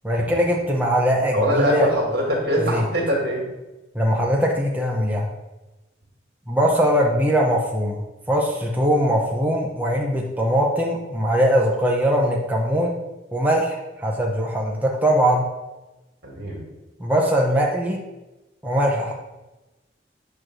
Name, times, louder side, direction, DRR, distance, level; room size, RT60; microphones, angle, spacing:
voice 1, 0.0-1.9 2.7-2.8 3.9-5.3 6.5-8.0 8.3-13.0 13.3-15.5 17.0-18.0 18.6-19.1, equal, 10° right, -1 dB, 0.7 m, -21 dB
voice 2, 1.3-3.4 16.2-16.6, equal, 60° right, -2 dB, 2.3 m, -23 dB
8.9 x 3.1 x 6.2 m, 1.1 s
head